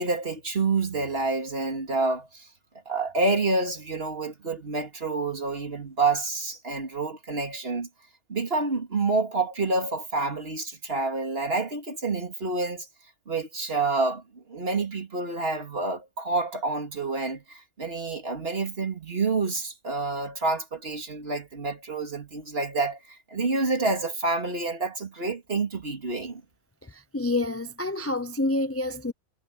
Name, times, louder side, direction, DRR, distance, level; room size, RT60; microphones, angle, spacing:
voice 1, 0.0-2.5 2.9-7.9 8.3-12.9 13.3-26.4, right 3 dB, 45° right, 2.8 m, -28 dB
voice 2, 26.8-29.1, left 2 dB, 20° left, 0.4 m, -28 dB
omnidirectional pair, 1.4 m